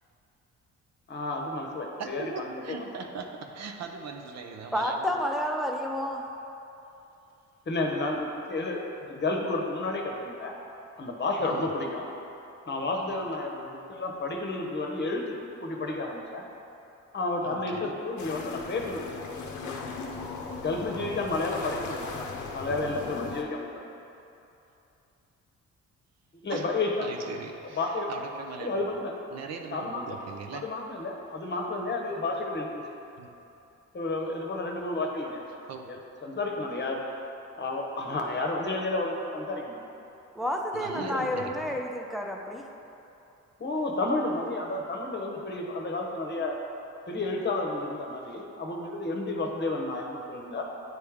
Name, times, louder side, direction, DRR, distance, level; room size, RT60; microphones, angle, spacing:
voice 1, 1.1-2.8 7.7-10.6 11.0-12.1 12.7-15.2 15.6-16.4 17.1-19.4 20.5-23.8 26.4-27.1 27.8-28.1 28.6-29.1 29.7-30.2 30.5-32.7 33.9-35.4 35.9-37.0 37.6-39.9 40.9-41.5 43.6-46.6 47.1-50.6, left 2 dB, 35° left, 1 dB, 0.9 m, -31 dB
voice 2, 2.0-5.1 11.4-11.7 13.1-13.2 17.4-17.9 22.6-22.8 26.5-26.7 27.0-28.8 29.3-30.7 33.2-33.4 35.7-35.9 40.7-41.8, right 5 dB, 60° right, 4 dB, 0.6 m, -40 dB
voice 3, 4.7-6.3 40.3-42.6, equal, ahead, 1 dB, 0.6 m, -30 dB
sound 1, 18.2-23.4, left 4 dB, 70° left, 0.7 m, -37 dB
9.4 x 3.3 x 3.5 m, 2.8 s
cardioid pair, 90°, 30 cm